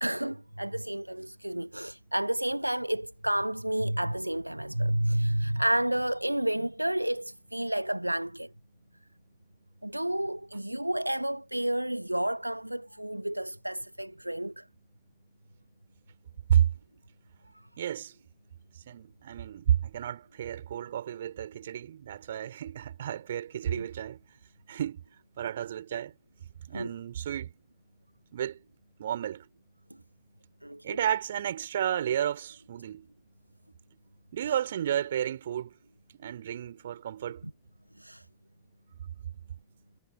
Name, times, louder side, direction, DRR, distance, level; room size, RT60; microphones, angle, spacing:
voice 1, 0.0-8.5 9.8-14.7 17.5-17.6 23.7-23.9 26.7-26.9 30.6-31.0 37.4-37.5 38.0-38.3, right 1 dB, 90° right, 0.8 m, -30 dB
voice 2, 17.8-18.1 18.9-24.2 24.7-25.0 25.4-26.1 26.7-27.5 28.3-28.6 29.0-29.5 30.8-33.1 34.3-35.8 36.2-37.4, right 10 dB, 65° right, 4.3 m, -31 dB
figure-of-eight pair, 90°, 0 cm